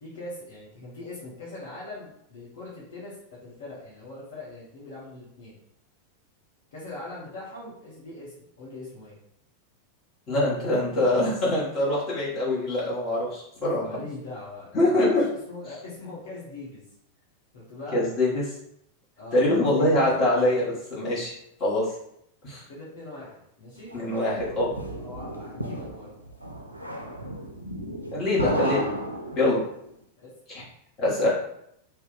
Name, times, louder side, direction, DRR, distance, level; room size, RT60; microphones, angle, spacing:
voice 1, 0.0-3.2 3.4-5.6 6.7-9.2 13.8-15.2 15.5-16.8 17.5-18.0 19.2-20.1 22.7-23.9 25.0-26.1 30.2-30.3, left 2 dB, 60° left, -7 dB, 1.0 m, -41 dB
voice 2, 10.3-14.0 14.7-15.3 17.9-18.4 19.3-21.3 21.6-21.8 22.4-22.6 23.9-24.7 28.1-28.9 29.3-29.6 30.5-30.6 31.0-31.3, left 1 dB, 30° left, -7 dB, 1.3 m, -24 dB
sound 1, 23.9-29.8, right 1 dB, 90° right, 0.3 m, -33 dB
2.7 x 2.1 x 3.9 m, 0.76 s
figure-of-eight pair, 90°, 0 cm